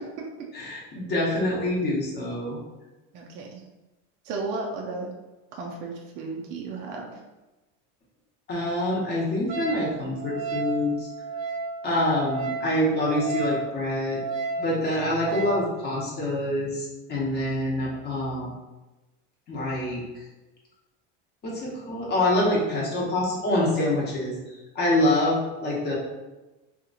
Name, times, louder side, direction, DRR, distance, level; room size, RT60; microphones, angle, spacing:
voice 1, 0.5-2.6 8.5-11.1 11.8-14.2 14.6-18.5 19.5-20.0 21.4-24.3 24.7-25.9, left 1 dB, 30° left, -4 dB, 0.8 m, -26 dB
voice 2, 3.1-3.6 4.3-5.1 5.6-7.1, right 3 dB, 35° right, -1 dB, 0.4 m, -34 dB
Wind instrument woodwind instrument, 9.5-15.7, right 4 dB, 70° right, 0.7 m, -33 dB
2.9 x 2.4 x 3.7 m, 1.1 s
cardioid pair, 160°, 35 cm